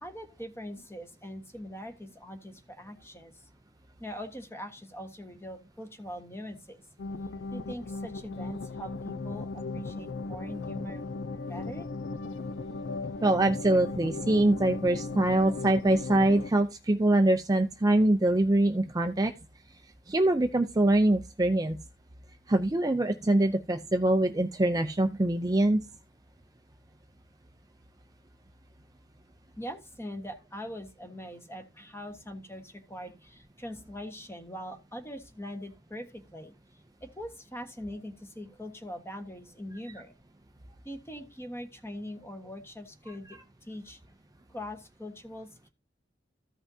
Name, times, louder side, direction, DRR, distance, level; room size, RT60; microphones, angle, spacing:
voice 1, 0.0-3.3 4.0-6.8 7.5-11.1 11.5-11.9 29.6-36.5 37.0-40.1 40.8-44.0 44.5-45.7, equal, 15° left, 6 dB, 1.4 m, -42 dB
sound 1, 7.0-16.5, left 3 dB, 75° left, 0.5 m, -37 dB
voice 2, 13.2-19.3 20.1-21.8 22.5-25.8, right 1 dB, 20° right, 6 dB, 0.5 m, -24 dB
14.5 x 5.6 x 2.7 m, 0.26 s
head